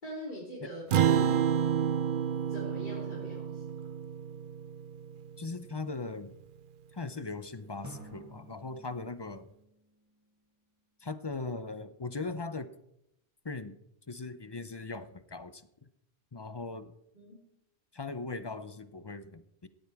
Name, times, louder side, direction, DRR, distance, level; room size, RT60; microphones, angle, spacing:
voice 1, 0.0-1.3 2.5-3.6 17.1-17.5, equal, 45° left, -5 dB, 3.4 m, -42 dB
Acoustic guitar, 0.9-5.6, right 9 dB, 55° right, 0.7 m, -29 dB
voice 2, 5.4-6.3 6.9-9.5 11.0-12.7 13.4-13.8 14.1-15.7 16.3-16.9 17.9-19.7, left 3 dB, 30° left, 12 dB, 0.5 m, -39 dB
Drum, 7.8-10.5, right 1 dB, 15° right, 1.6 m, -51 dB
17.5 x 13.0 x 3.5 m, 0.82 s
omnidirectional pair, 1.1 m